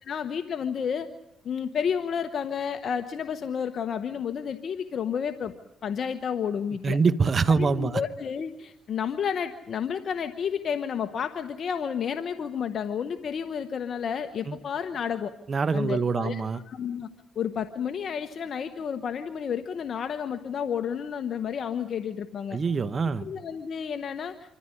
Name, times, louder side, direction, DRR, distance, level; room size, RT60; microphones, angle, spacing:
voice 1, 0.0-1.1 1.4-5.5 5.8-7.0 7.5-15.3 15.7-17.1 17.3-22.6 23.2-24.6, left 7 dB, 55° left, 9 dB, 1.1 m, -31 dB
voice 2, 6.8-8.0 14.5-14.6 15.5-16.6 22.5-23.3, right 5 dB, 40° right, 15 dB, 1.0 m, -24 dB
26.0 x 14.5 x 9.8 m, 0.87 s
cardioid pair, 85°, 0 cm